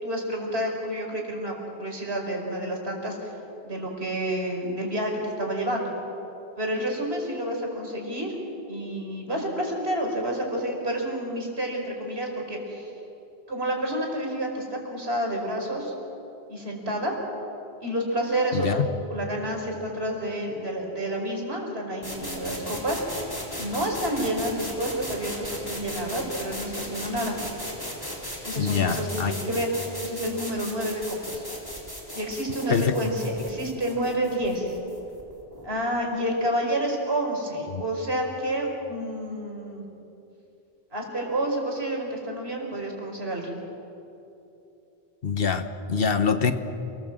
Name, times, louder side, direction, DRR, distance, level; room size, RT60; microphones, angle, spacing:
voice 1, 0.0-3.3 3.6-5.9 6.6-8.3 8.7-12.9 13.5-15.9 16.5-17.2 17.8-23.0 23.6-27.4 28.4-31.4 32.1-34.7 35.6-39.8 40.9-43.5, right 1 dB, 70° right, 1 dB, 5.0 m, -29 dB
voice 2, 18.5-18.9 28.6-29.3 32.7-32.9 37.7-37.8 45.2-46.5, left 6 dB, 60° left, 9 dB, 1.3 m, -24 dB
sound 1, 22.0-35.7, equal, 20° left, 3.9 m, -37 dB
28.5 x 19.5 x 7.7 m, 2.9 s
omnidirectional pair, 1.1 m